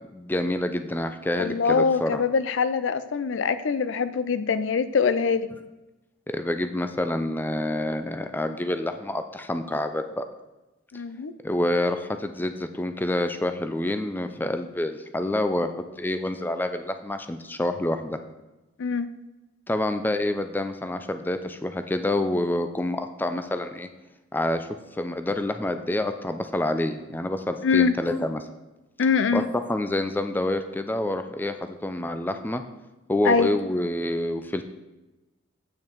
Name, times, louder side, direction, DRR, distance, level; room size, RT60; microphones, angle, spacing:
voice 1, 0.1-2.2 6.3-10.2 11.4-15.7 16.0-18.2 19.7-23.9 24.3-28.5 29.3-32.6 33.1-34.6, left 1 dB, 10° left, 8 dB, 0.4 m, -27 dB
voice 2, 1.4-5.5 10.9-11.3 18.8-19.1 27.6-28.0 29.0-29.5 33.2-33.5, left 5 dB, 75° left, 13 dB, 0.5 m, -23 dB
8.6 x 6.1 x 4.5 m, 1.0 s
head